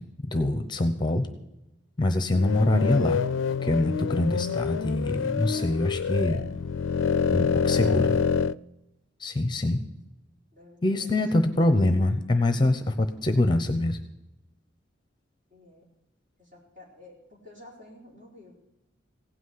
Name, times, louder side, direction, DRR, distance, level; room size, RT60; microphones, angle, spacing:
voice 1, 0.3-1.3 2.0-3.2 3.6-6.4 7.3-8.1 9.2-9.8 10.8-14.0, left 2 dB, 25° left, 9 dB, 0.9 m, -24 dB
sound 1, 2.3-8.5, left 6 dB, 85° left, 0.4 m, -26 dB
voice 2, 7.3-8.3 10.5-11.4 15.5-15.9 16.4-18.5, left 2 dB, 40° right, -2 dB, 4.4 m, -49 dB
16.5 x 6.2 x 9.5 m, 0.94 s
head